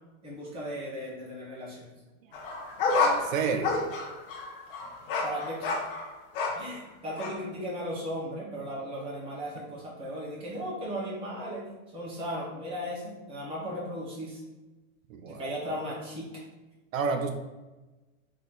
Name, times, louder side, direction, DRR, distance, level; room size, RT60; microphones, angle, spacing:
voice 1, 0.2-1.9 5.2-5.9 6.5-14.4 15.3-16.3, equal, 15° right, -6 dB, 1.1 m, -36 dB
sound 1, 2.3-6.8 7.2-7.4, left 3 dB, 45° left, 0.9 m, -30 dB
voice 2, 3.0-3.8 15.1-15.4 16.9-17.3, right 5 dB, 75° right, 6 dB, 0.6 m, -30 dB
4.2 x 3.1 x 4.1 m, 1.1 s
supercardioid pair, 165°, 40 cm